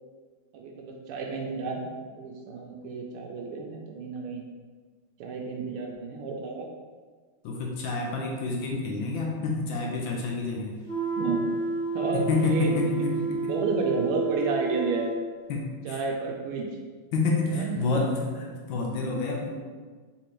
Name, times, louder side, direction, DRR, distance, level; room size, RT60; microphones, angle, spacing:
voice 1, 0.5-4.4 5.2-6.7 11.2-11.5 11.9-12.8 13.5-15.1 15.8-16.8 17.5-18.0, right 4 dB, 85° right, 1 dB, 1.5 m, -31 dB
voice 2, 7.4-10.8 12.1-13.5 15.5-16.0 17.1-19.5, left 3 dB, 75° left, -1 dB, 1.3 m, -28 dB
sound 1, 10.9-15.1, right 3 dB, 30° right, 1.4 m, -30 dB
4.1 x 3.6 x 3.0 m, 1.5 s
omnidirectional pair, 2.3 m